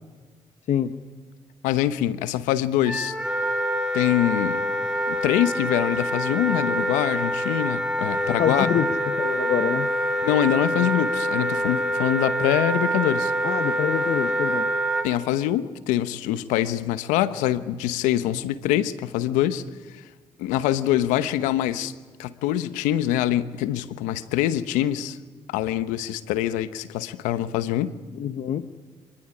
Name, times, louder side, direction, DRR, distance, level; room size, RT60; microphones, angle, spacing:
voice 1, 1.6-3.1 3.9-4.6 5.1-8.7 10.2-13.3 15.0-19.6 19.9-20.0 20.4-21.9 22.2-25.2 25.5-27.9, left 12 dB, 90° left, 14 dB, 1.0 m, -24 dB
Wind instrument woodwind instrument, 2.8-15.0, equal, 5° right, 3.9 m, -25 dB
voice 2, 8.4-9.9 13.4-14.6 28.1-28.7, left 9 dB, 65° left, 12 dB, 1.1 m, -26 dB
25.5 x 21.0 x 9.9 m, 1.5 s
supercardioid pair, 55°, 13 cm